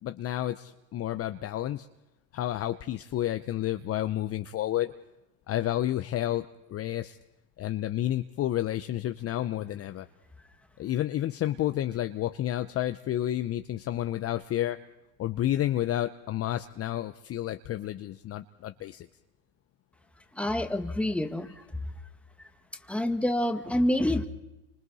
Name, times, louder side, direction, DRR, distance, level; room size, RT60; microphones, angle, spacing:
voice 1, 0.0-1.9 2.3-4.9 5.5-7.2 7.6-10.1 10.8-14.8 15.2-19.1 21.5-21.6, left 13 dB, 30° left, 10 dB, 0.8 m, -30 dB
voice 2, 20.3-21.6 22.9-24.3, left 1 dB, 5° left, 7 dB, 1.8 m, -27 dB
29.5 x 25.5 x 4.2 m, 0.98 s
hypercardioid pair, 105°, 44 cm